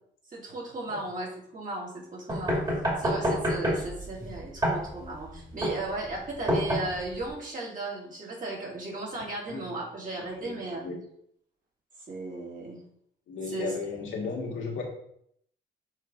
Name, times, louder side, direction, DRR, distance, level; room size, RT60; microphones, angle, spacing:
voice 1, 0.3-2.6 3.0-10.8 12.1-12.8 13.5-13.7, right 2 dB, 40° right, -4 dB, 2.5 m, -36 dB
sound 1, 2.3-7.3, equal, 20° right, 2.1 m, -28 dB
voice 2, 10.3-11.0 13.3-14.8, left 4 dB, 80° left, -2 dB, 1.8 m, -35 dB
7.3 x 3.4 x 3.8 m, 0.69 s
cardioid pair, 90°, 20 cm